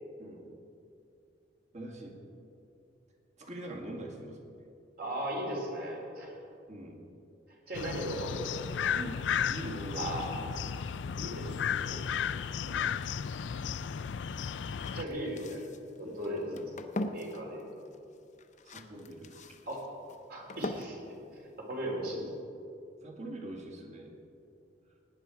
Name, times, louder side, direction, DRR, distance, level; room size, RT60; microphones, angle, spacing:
voice 1, 0.2-0.5 1.7-2.1 3.4-4.4 6.7-7.0 8.9-10.5 12.6-13.0 16.0-16.2 16.5-16.7 18.6-19.4 23.0-24.1, right 1 dB, 40° right, 0 dB, 2.0 m, -43 dB
voice 2, 5.0-6.4 7.7-8.9 9.9-10.3 11.1-12.3 14.9-15.7 16.0-16.5 17.1-17.6 19.7-19.8 20.3-21.0 21.3-22.3, right 1 dB, 55° right, -2 dB, 3.5 m, -37 dB
sound 1, 7.7-15.0, left 7 dB, 80° left, 0.4 m, -34 dB
sound 2, 11.5-22.4, left 1 dB, 40° left, 0.7 m, -44 dB
17.5 x 9.9 x 4.7 m, 2.6 s
head